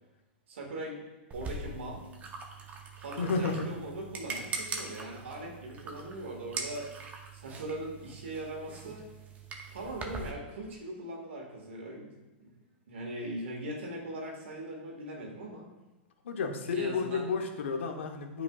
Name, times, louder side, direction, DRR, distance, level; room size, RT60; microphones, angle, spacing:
voice 1, 0.5-1.0 1.3-2.0 3.0-6.9 7.3-9.0 9.7-12.1 12.4-12.5 12.9-15.7 16.7-17.2, right 1 dB, 90° right, 0 dB, 1.9 m, -40 dB
sound 1, 1.3-10.3, right 3 dB, 25° right, 0.8 m, -42 dB
voice 2, 3.2-3.7 16.2-18.4, left 4 dB, 85° left, 4 dB, 1.0 m, -31 dB
8.8 x 5.1 x 2.4 m, 1.1 s
hypercardioid pair, 130°, 6 cm